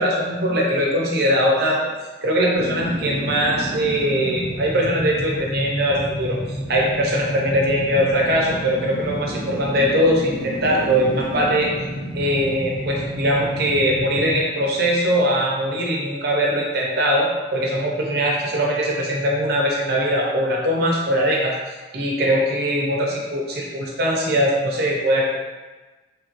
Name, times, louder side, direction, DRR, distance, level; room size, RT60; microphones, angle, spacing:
voice 1, 0.0-1.8 2.2-11.7 12.1-25.3, equal, 50° right, -2 dB, 0.6 m, -21 dB
sound 1, 2.5-15.6 15.9-16.0, equal, 65° left, 1.1 m, -31 dB
3.2 x 3.0 x 2.5 m, 1.2 s
head